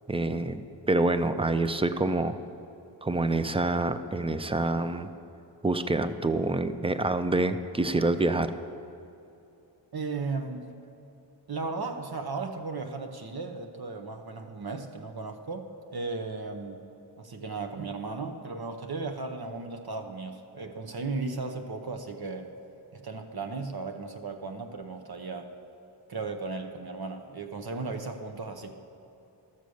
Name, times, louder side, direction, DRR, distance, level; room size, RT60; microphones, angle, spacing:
voice 1, 0.1-2.4 3.0-5.1 5.6-8.5, right 2 dB, 15° right, 11 dB, 0.4 m, -27 dB
voice 2, 9.9-10.7 11.5-16.8 17.2-22.5 22.9-25.5 26.1-28.7, right 3 dB, 55° right, 5 dB, 0.8 m, -36 dB
12.5 x 6.8 x 6.3 m, 2.8 s
wide cardioid pair, 90°, 45 cm